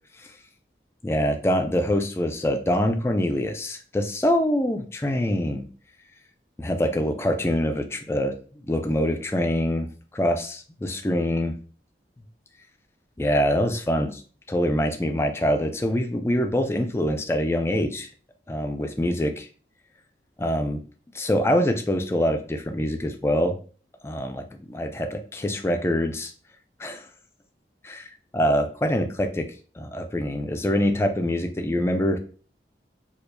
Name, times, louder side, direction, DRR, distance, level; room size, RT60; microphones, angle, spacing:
voice 1, 1.0-5.7 6.6-8.4 8.7-9.9 10.1-11.5 13.2-14.2 14.5-18.1 18.5-19.5 20.4-20.8 21.1-23.6 24.0-24.4 24.7-26.3 26.8-27.1 27.8-29.5 29.8-32.2, equal, 15° left, 6 dB, 0.3 m, -24 dB
4.4 x 2.4 x 2.6 m, 0.40 s
head